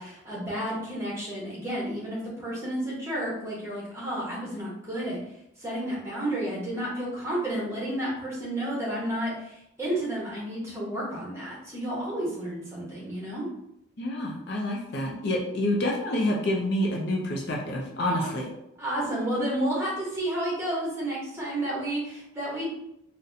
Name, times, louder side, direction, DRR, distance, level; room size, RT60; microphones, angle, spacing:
voice 1, 0.0-5.2 5.6-13.5 18.2-18.3 18.8-22.7, right 1 dB, 15° right, -5 dB, 0.9 m, -31 dB
voice 2, 14.0-18.5, left 1 dB, 55° left, -1 dB, 0.5 m, -28 dB
4.0 x 2.2 x 2.6 m, 0.79 s
head